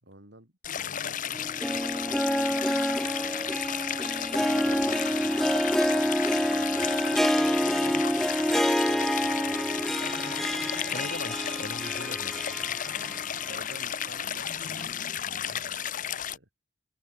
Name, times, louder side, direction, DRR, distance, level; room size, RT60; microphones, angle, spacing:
voice 1, 0.0-2.2 4.3-6.1 6.5-7.2 7.5-8.1 8.5-9.9 13.5-14.5 15.4-16.5, right 1 dB, 75° right, 5.0 m, -50 dB
Stream, 0.6-16.4, left 9 dB, 45° left, 0.7 m, -33 dB
Harp, 1.4-13.5 13.8-13.9 14.8-14.9, equal, ahead, 0.5 m, -27 dB
sound 1, 3.3-14.8, right 4 dB, 40° right, 7.0 m, -59 dB
voice 2, 10.9-12.8 15.2-15.6, left 2 dB, 65° left, 4.5 m, -41 dB
head